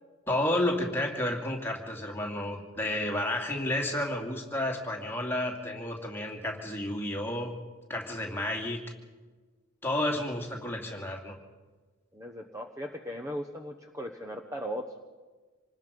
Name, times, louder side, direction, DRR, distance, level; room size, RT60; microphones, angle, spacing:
voice 1, 0.3-7.5 7.9-8.8 9.8-11.4, left 1 dB, 10° left, 0 dB, 2.6 m, -31 dB
voice 2, 12.1-15.0, equal, 15° right, 4 dB, 1.0 m, -38 dB
26.5 x 19.5 x 5.3 m, 1.3 s
head